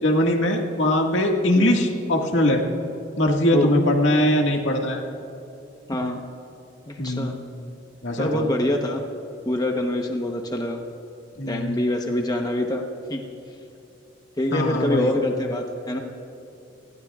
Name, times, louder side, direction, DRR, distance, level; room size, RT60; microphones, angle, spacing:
voice 1, 0.0-2.6 3.2-5.0 7.0-7.4 8.0-8.5 11.4-11.8 14.5-15.1, left 1 dB, 75° left, 1 dB, 1.8 m, -21 dB
voice 2, 5.9-6.2 6.9-7.3 8.2-9.0 9.4-10.8 11.5-12.8 13.1-13.2 14.4-16.0, left 1 dB, 20° left, 2 dB, 0.9 m, -25 dB
29.5 x 19.5 x 2.4 m, 2.8 s
head